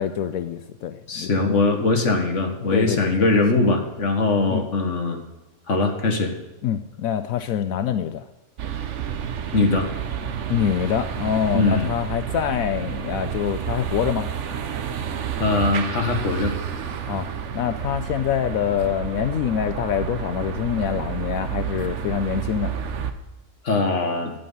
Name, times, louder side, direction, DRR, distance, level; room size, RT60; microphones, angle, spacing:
voice 1, 0.0-1.3 2.7-3.4 4.5-4.7 6.6-8.3 10.5-14.3 17.1-17.3 17.5-22.7, left 9 dB, 75° left, 10 dB, 1.0 m, -25 dB
voice 2, 1.1-5.2 5.7-6.3 9.5-9.9 11.5-11.9 15.4-16.5 23.6-24.3, left 3 dB, 55° left, 4 dB, 1.8 m, -21 dB
sound 1, 8.6-23.1, right 8 dB, 55° right, 1.1 m, -30 dB
12.0 x 9.2 x 5.5 m, 1.1 s
omnidirectional pair, 1.6 m